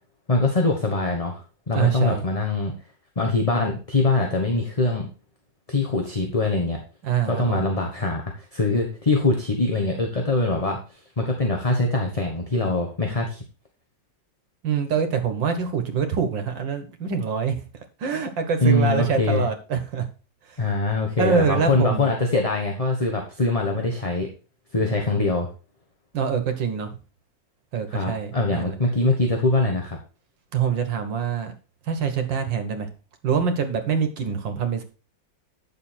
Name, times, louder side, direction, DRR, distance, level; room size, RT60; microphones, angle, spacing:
voice 1, 0.3-2.7 3.2-5.1 5.7-6.8 7.3-13.4 18.6-19.5 20.6-24.3 24.7-25.5 27.9-30.0, left 2 dB, 20° left, 2 dB, 1.2 m, -23 dB
voice 2, 1.7-2.3 7.0-7.6 14.6-17.6 18.0-20.1 20.5-20.6 21.2-22.1 26.1-26.9 27.7-28.8 30.5-31.6 31.9-32.9 33.2-34.8, right 6 dB, 90° right, 7 dB, 2.1 m, -25 dB
9.3 x 6.8 x 4.4 m, 0.34 s
omnidirectional pair, 2.0 m